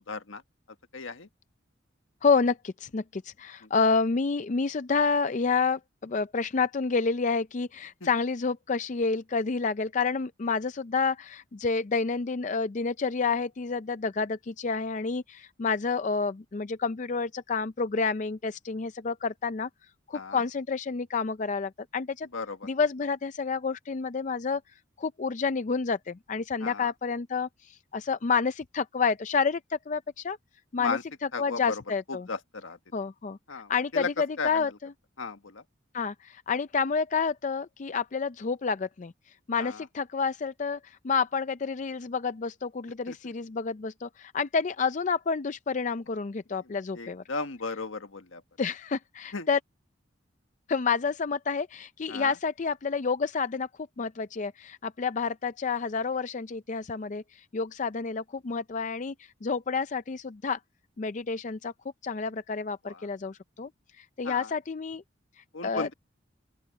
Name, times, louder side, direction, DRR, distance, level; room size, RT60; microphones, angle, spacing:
voice 1, 0.1-0.4 0.9-1.3 20.1-20.4 22.3-22.7 26.6-26.9 30.8-31.0 31.3-31.8 32.3-32.8 33.5-34.1 34.4-34.6 35.2-35.6 39.6-39.8 43.1-43.2 46.9-48.4 49.3-49.5 52.1-52.3 62.8-63.0 64.2-64.5 65.5-65.9, left 4 dB, 80° left, 1.6 m, -35 dB
voice 2, 2.2-19.7 20.1-22.3 22.6-24.6 25.0-30.4 30.7-31.0 31.4-32.3 32.9-33.4 33.7-34.9 35.9-39.1 39.5-47.2 48.6-49.6 50.7-53.7 54.0-59.1 59.4-60.6 61.0-61.7 62.0-63.7 64.0-65.0 65.6-65.9, left 5 dB, 40° left, 0.4 m, -29 dB
open air
head